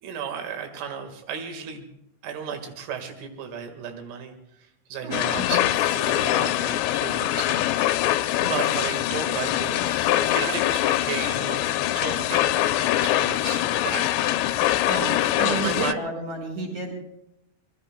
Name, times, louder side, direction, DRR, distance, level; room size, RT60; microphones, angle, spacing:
voice 1, 0.0-1.9 2.2-8.1 8.5-14.2 15.0-16.0, right 6 dB, 85° right, 5 dB, 4.3 m, -34 dB
voice 2, 5.0-5.7 8.4-8.7 14.9-16.9, right 3 dB, 35° right, 2 dB, 6.1 m, -32 dB
sound 1, 5.1-15.9, left 14 dB, 80° left, 2.6 m, -23 dB
25.5 x 22.5 x 2.2 m, 0.84 s
omnidirectional pair, 5.5 m